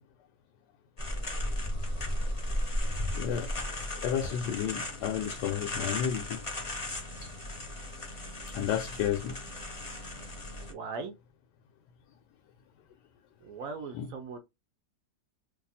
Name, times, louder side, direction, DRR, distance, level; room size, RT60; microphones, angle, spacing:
sound 1, 1.0-10.7, left 1 dB, 35° left, 0.5 m, -35 dB
voice 1, 2.8-3.5 4.0-6.4 8.5-9.3 13.9-14.1, left 9 dB, 80° left, 1.2 m, -32 dB
voice 2, 10.7-11.1 13.4-14.4, right 4 dB, 70° right, 0.8 m, -39 dB
2.8 x 2.4 x 4.0 m
omnidirectional pair, 1.8 m